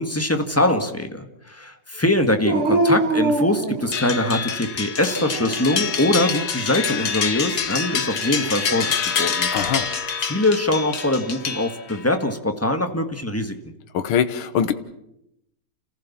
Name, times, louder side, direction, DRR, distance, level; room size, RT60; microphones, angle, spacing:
voice 1, 0.0-9.5 10.2-13.7, left 1 dB, 10° left, 6 dB, 1.3 m, -23 dB
Dog, 2.4-4.3 5.0-5.8 8.0-8.9, right 2 dB, 75° right, 2.7 m, -24 dB
sound 1, 3.9-12.1, left 6 dB, 50° left, 2.0 m, -26 dB
voice 2, 9.5-9.9 13.9-14.7, left 8 dB, 70° left, 10 dB, 1.9 m, -22 dB
29.5 x 15.0 x 7.3 m, 0.83 s
omnidirectional pair, 2.4 m